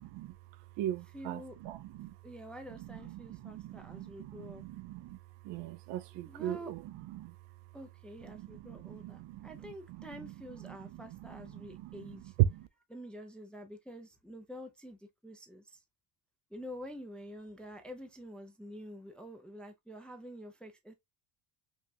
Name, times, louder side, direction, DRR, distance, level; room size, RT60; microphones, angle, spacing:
voice 1, 0.0-2.2 2.8-7.4 8.2-12.7, right 14 dB, 60° right, 0.5 m, -38 dB
voice 2, 1.1-1.6 2.2-4.6 6.3-6.7 7.7-12.3 12.9-15.8 16.5-20.9, equal, ahead, 0.4 m, -47 dB
5.3 x 2.4 x 2.6 m
cardioid pair, 140°, 49 cm